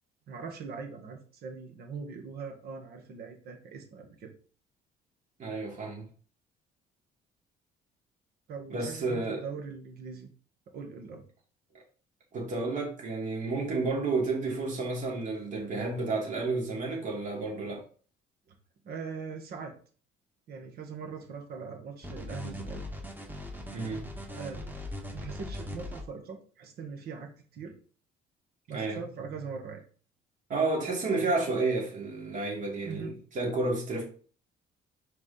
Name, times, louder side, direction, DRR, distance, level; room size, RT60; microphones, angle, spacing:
voice 1, 0.3-4.3 8.5-10.3 10.7-11.2 18.5-18.6 18.8-19.7 20.5-22.8 24.3-24.6 25.1-27.7 28.7-29.8 32.8-33.1, right 5 dB, 65° right, 1.8 m, -41 dB
voice 2, 5.4-6.1 8.7-9.4 12.3-17.8 23.7-24.1 28.7-29.0 30.5-34.0, right 3 dB, 50° right, 3.0 m, -31 dB
sound 1, 22.0-26.0, left 1 dB, 10° right, 1.6 m, -40 dB
5.0 x 4.8 x 4.2 m
cardioid pair, 110°, 17 cm